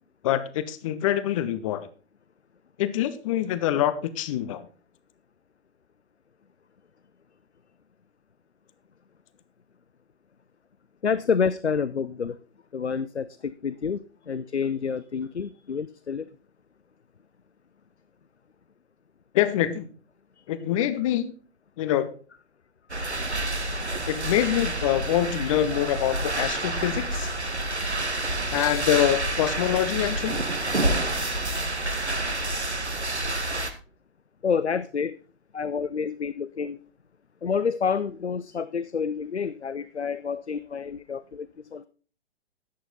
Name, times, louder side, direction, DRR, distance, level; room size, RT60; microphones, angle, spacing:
voice 1, 0.2-1.9 2.8-4.7 19.3-19.8 20.5-21.3 21.8-22.1 24.1-27.3 28.5-30.4, left 11 dB, 30° left, 14 dB, 0.7 m, -25 dB
voice 2, 11.0-12.4 12.7-16.3 20.4-20.5 34.4-35.2 35.5-36.8 37.4-41.9, left 6 dB, 90° left, 16 dB, 0.5 m, -28 dB
sound 1, 22.9-33.7, right 1 dB, 90° right, 1.3 m, -28 dB
11.5 x 7.9 x 4.0 m, 0.38 s
figure-of-eight pair, 115°, 32 cm